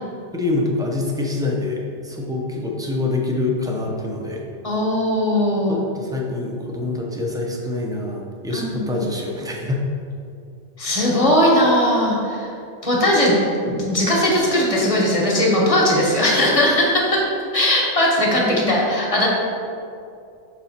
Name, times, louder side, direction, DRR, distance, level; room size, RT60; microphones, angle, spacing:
voice 1, 0.3-4.4 5.7-9.8 18.4-18.6, left 2 dB, 5° right, -1 dB, 0.4 m, -25 dB
voice 2, 4.6-5.8 8.5-9.0 10.8-12.5 12.8-13.3 13.6-19.3, left 1 dB, 30° left, -4 dB, 1.1 m, -19 dB
6.1 x 4.0 x 4.2 m, 2.6 s
omnidirectional pair, 1.2 m